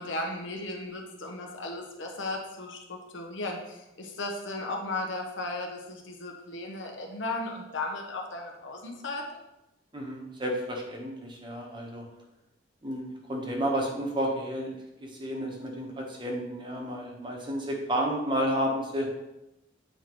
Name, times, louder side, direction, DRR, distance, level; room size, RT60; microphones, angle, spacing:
voice 1, 0.0-9.4, left 2 dB, 85° left, 2 dB, 1.0 m, -36 dB
voice 2, 9.9-12.1 12.8-14.7 15.0-19.1, equal, 25° right, 0 dB, 1.0 m, -31 dB
8.0 x 4.2 x 3.0 m, 0.93 s
head